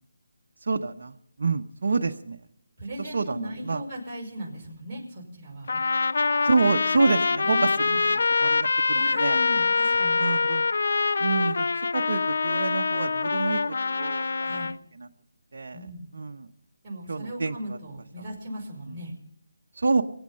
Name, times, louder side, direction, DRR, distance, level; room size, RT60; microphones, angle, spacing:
voice 1, 0.7-2.4 3.0-3.8 6.4-9.4 10.2-10.6 11.2-11.6 11.9-14.5 15.0-15.1 15.5-15.8 16.1-16.5 17.1-17.6 19.8-20.0, right 3 dB, 60° right, 4 dB, 0.9 m, -27 dB
voice 2, 2.8-5.8 6.3-6.4 7.4-8.0 8.9-10.3 14.4-14.7 15.7-16.1 16.8-19.1, equal, 15° right, -7 dB, 5.3 m, -37 dB
Trumpet, 5.7-14.7, left 4 dB, 60° left, 0.5 m, -25 dB
23.5 x 8.7 x 5.6 m, 0.71 s
figure-of-eight pair, 160°, 0 cm